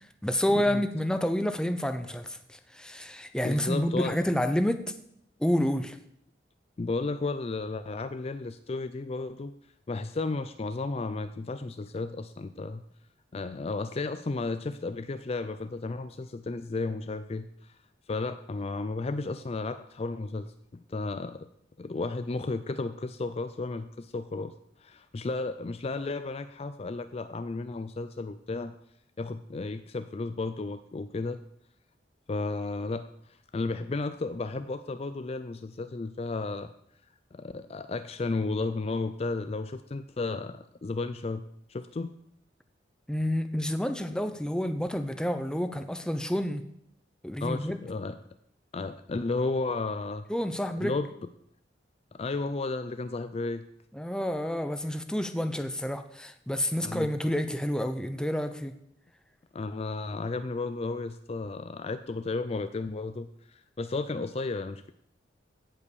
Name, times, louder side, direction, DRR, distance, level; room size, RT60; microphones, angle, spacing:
voice 1, 0.2-4.8 5.4-6.0 43.1-46.6 47.2-47.8 50.3-51.0 53.9-58.7, equal, 5° left, 9 dB, 0.7 m, -29 dB
voice 2, 3.4-4.2 6.8-9.5 9.9-12.8 13.3-17.7 18.1-21.5 21.8-24.5 24.8-28.7 29.2-31.4 32.3-36.7 37.3-41.4 41.7-42.2 47.4-48.2 48.7-50.3 50.8-51.1 52.1-53.7 56.8-57.1 59.5-64.9, left 3 dB, 35° left, 11 dB, 0.4 m, -33 dB
16.5 x 5.6 x 6.8 m, 0.73 s
head